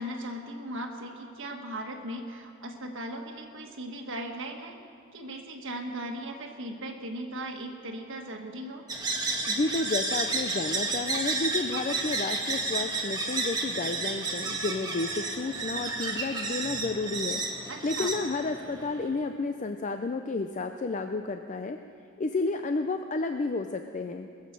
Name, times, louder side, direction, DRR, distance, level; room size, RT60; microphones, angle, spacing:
voice 1, 0.0-4.8 5.1-8.8 17.7-18.1, right 1 dB, 65° right, 2 dB, 1.5 m, -38 dB
sound 1, 8.9-19.1, right 3 dB, 20° right, 1.6 m, -31 dB
voice 2, 9.5-21.8 22.2-24.3, left 3 dB, 35° left, 7 dB, 0.5 m, -31 dB
20.5 x 7.4 x 7.5 m, 2.4 s
head